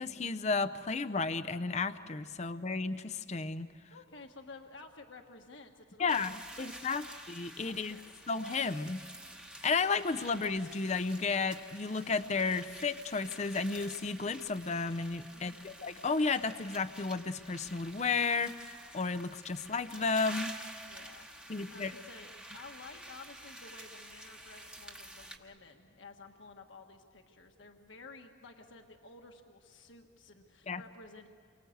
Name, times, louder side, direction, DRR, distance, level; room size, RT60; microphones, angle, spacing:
voice 1, 0.0-3.7 6.0-6.3 6.6-8.0 8.3-9.0 9.6-20.5 21.5-21.9 30.7-30.8, left 4 dB, 35° left, 9 dB, 0.6 m, -33 dB
voice 2, 3.9-6.2 6.5-7.3 7.6-8.1 15.3-15.7 20.8-31.3, left 3 dB, 70° left, 3 dB, 1.5 m, -53 dB
sound 1, 6.1-25.4, right 1 dB, 5° right, 1.2 m, -49 dB
28.5 x 24.5 x 8.0 m, 2.3 s
head